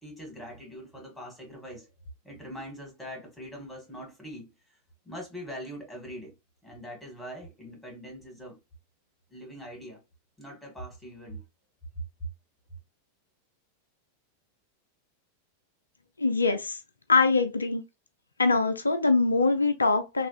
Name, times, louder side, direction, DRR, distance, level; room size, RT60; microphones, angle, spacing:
voice 1, 0.0-1.9 2.2-4.5 5.0-6.3 6.6-8.6 9.3-10.0 10.4-11.4, equal, 5° left, 1.7 m, -42 dB
voice 2, 16.2-16.8 17.1-17.8 18.4-20.3, left 3 dB, 80° left, 0.4 m, -23 dB
3.2 x 2.4 x 2.4 m
figure-of-eight pair, 90°, 0 cm